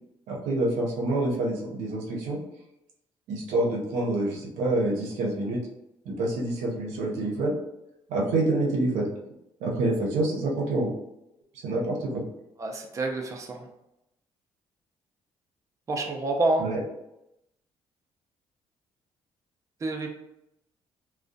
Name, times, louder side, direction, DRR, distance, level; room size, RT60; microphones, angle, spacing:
voice 1, 0.3-2.4 3.3-5.6 6.1-7.5 8.1-9.1 9.6-10.9 11.6-12.2 16.6-16.8, right 2 dB, 85° right, -1 dB, 0.6 m, -27 dB
voice 2, 12.6-13.6 15.9-16.7 19.8-20.1, right 2 dB, 30° right, 2 dB, 0.4 m, -28 dB
2.3 x 2.1 x 2.5 m, 0.86 s
cardioid pair, 80°, 11 cm